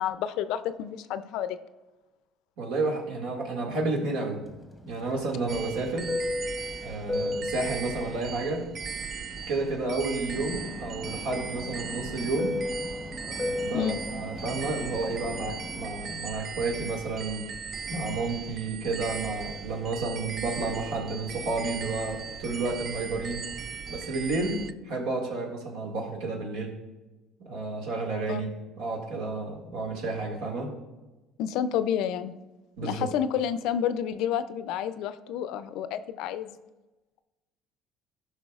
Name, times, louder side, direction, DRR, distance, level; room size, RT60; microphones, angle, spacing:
voice 1, 0.0-1.6 13.7-14.0 28.3-28.4 31.4-32.3 32.8-36.6, left 9 dB, 75° left, 12 dB, 0.4 m, -29 dB
voice 2, 2.6-4.4 4.8-6.1 6.8-8.6 9.5-12.6 13.3-17.4 17.9-23.5 23.9-26.8 27.4-30.8 32.8-33.1, right 3 dB, 80° right, 0 dB, 1.9 m, -31 dB
Fixed-wing aircraft airplane, 4.5-9.8 10.2-16.0, left 2 dB, 5° left, 0.9 m, -35 dB
sound 1, 5.5-24.7, right 6 dB, 40° right, 0.3 m, -38 dB
16.5 x 5.6 x 2.4 m, 1.1 s
cardioid pair, 130°, 0 cm